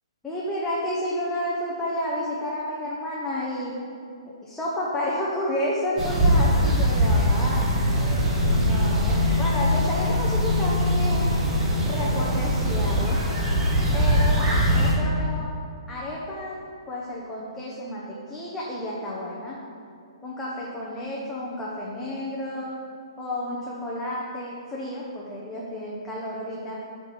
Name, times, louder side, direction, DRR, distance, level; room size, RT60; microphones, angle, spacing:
voice 1, 0.2-3.8 4.3-7.7 8.4-11.4 11.8-13.2 13.9-14.4 14.7-15.5 15.9-16.6 16.9-19.6 20.2-22.8 23.2-26.8, left 1 dB, 5° left, -7 dB, 0.9 m, -31 dB
sound 1, 6.0-14.9, equal, 20° right, 1.2 m, -22 dB
5.8 x 5.1 x 4.7 m, 2.4 s
figure-of-eight pair, 125°, 3 cm